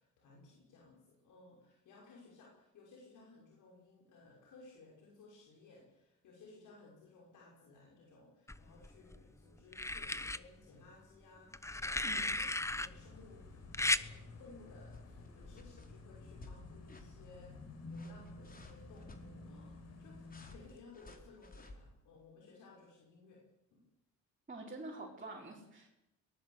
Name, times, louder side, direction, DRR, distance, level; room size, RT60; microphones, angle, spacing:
voice 1, 0.0-17.6 17.8-23.4 23.7-23.8, left 3 dB, 80° left, -1 dB, 6.1 m, -59 dB
sound 1, 8.5-9.2 9.7-10.4 11.5-12.9 13.7-14.1 15.4-15.6, left 2 dB, 10° left, 1.0 m, -35 dB
sound 2, 12.7-20.7, left 3 dB, 60° left, 5.4 m, -52 dB
sound 3, 14.9-15.3 15.5-15.9 16.3-16.6 16.9-17.1 17.8-19.2 20.3-21.8, left 2 dB, 30° left, 4.8 m, -55 dB
voice 2, 24.5-25.9, right 2 dB, 25° right, -2 dB, 5.3 m, -47 dB
23.0 x 20.0 x 8.4 m, 0.87 s
cardioid pair, 90°, 30 cm